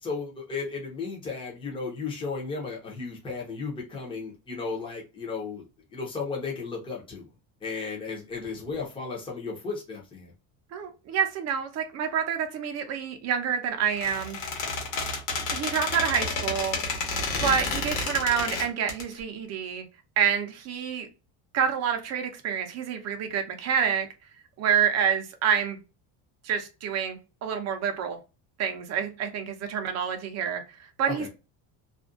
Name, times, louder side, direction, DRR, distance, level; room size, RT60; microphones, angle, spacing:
voice 1, 0.0-5.6 5.9-7.3 7.6-10.3 17.3-17.6 31.1-31.3, left 4 dB, 10° left, -2 dB, 0.6 m, -34 dB
voice 2, 10.7-14.7 15.5-16.8 17.4-19.8 20.2-21.1 21.5-24.1 24.6-25.8 26.4-28.2 28.6-31.3, right 7 dB, 35° right, 6 dB, 0.5 m, -28 dB
Squeak, 13.9-19.0, left 3 dB, 70° left, 1.1 m, -30 dB
2.5 x 2.2 x 2.4 m, 0.29 s
cardioid pair, 160°, 47 cm